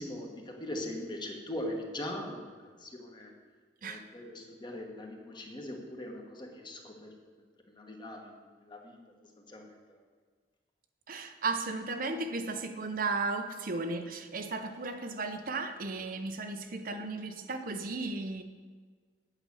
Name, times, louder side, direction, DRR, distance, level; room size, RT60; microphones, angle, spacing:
voice 1, 0.0-2.5 2.8-3.3 3.8-7.1 7.7-8.3 8.7-10.0, left 1 dB, 25° left, 2 dB, 1.4 m, -41 dB
voice 2, 11.1-18.4, right 3 dB, 55° right, 7 dB, 0.8 m, -35 dB
9.0 x 6.0 x 8.3 m, 1.5 s
head